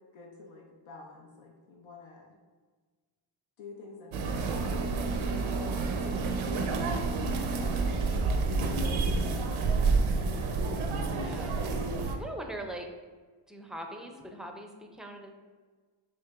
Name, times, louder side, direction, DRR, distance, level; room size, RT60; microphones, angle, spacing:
voice 1, 0.1-2.3 3.6-6.6 7.1-8.4 8.8-9.6, left 3 dB, 85° left, 0 dB, 0.6 m, -49 dB
sound 1, 4.1-12.2, right 3 dB, 75° right, 0.6 m, -29 dB
voice 2, 11.1-11.6 11.9-12.9 13.5-15.3, right 1 dB, ahead, 3 dB, 0.4 m, -41 dB
4.6 x 3.0 x 2.4 m, 1.4 s
cardioid pair, 70°, 48 cm